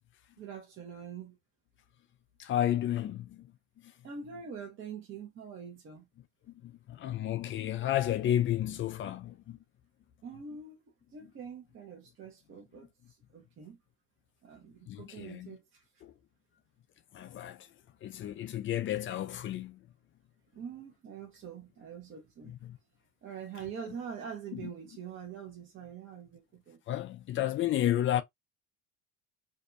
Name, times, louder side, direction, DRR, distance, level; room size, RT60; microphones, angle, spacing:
voice 1, 0.4-1.4 4.0-6.1 10.2-10.8 11.1-13.8 14.4-15.8 20.5-22.5 23.2-26.8, right 7 dB, 40° right, 0.8 m, -44 dB
voice 2, 2.4-3.5 6.6-9.6 14.9-15.6 16.0-16.1 17.1-17.7 18.0-19.8 22.5-22.8 24.5-24.6 26.9-28.2, left 12 dB, 40° left, 0.4 m, -32 dB
2.6 x 2.2 x 2.5 m
supercardioid pair, 95°, 32 cm